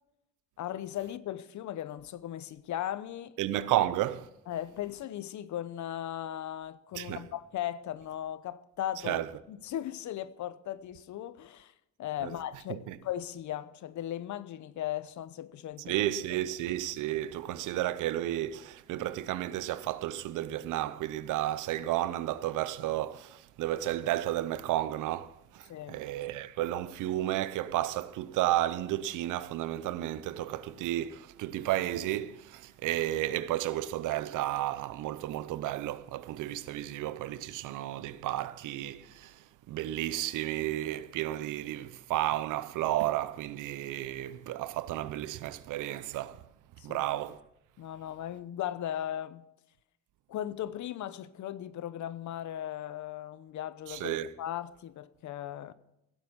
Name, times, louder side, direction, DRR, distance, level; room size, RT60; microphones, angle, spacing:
voice 1, 0.6-3.4 4.5-11.7 12.0-15.9 25.7-26.0 46.8-47.0 47.8-49.4 50.3-55.7, left 11 dB, 70° left, 0.9 m, -37 dB
voice 2, 3.4-4.3 7.0-7.2 9.1-9.3 12.2-12.3 12.7-13.0 15.8-39.3 39.7-46.4 46.8-47.4 53.9-54.3, right 14 dB, 85° right, 0.8 m, -32 dB
16.0 x 8.0 x 7.2 m
cardioid pair, 90°, 30 cm